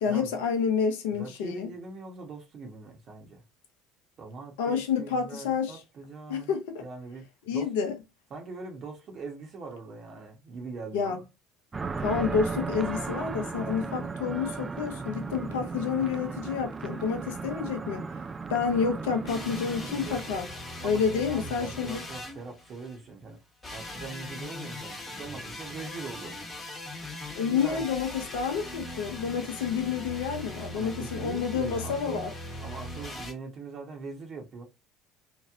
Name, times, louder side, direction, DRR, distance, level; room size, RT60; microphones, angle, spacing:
voice 1, 0.0-1.7 4.6-5.8 6.3-6.8 7.5-7.9 10.9-11.2 12.0-18.1 18.5-20.5 20.8-22.0 27.4-32.3, left 6 dB, 75° left, 0.6 m, -29 dB
voice 2, 1.1-3.4 4.2-6.5 6.8-7.8 8.3-11.2 13.8-14.0 20.0-20.4 20.8-23.4 23.7-26.4 27.5-28.0 30.7-32.2 32.6-34.7, right 4 dB, 45° right, 1.1 m, -42 dB
sound 1, 11.7-20.2, right 4 dB, 25° right, 0.3 m, -35 dB
sound 2, 19.3-23.0 23.6-33.3, left 1 dB, 20° left, 1.2 m, -40 dB
3.0 x 2.5 x 2.4 m
hypercardioid pair, 65°, 0 cm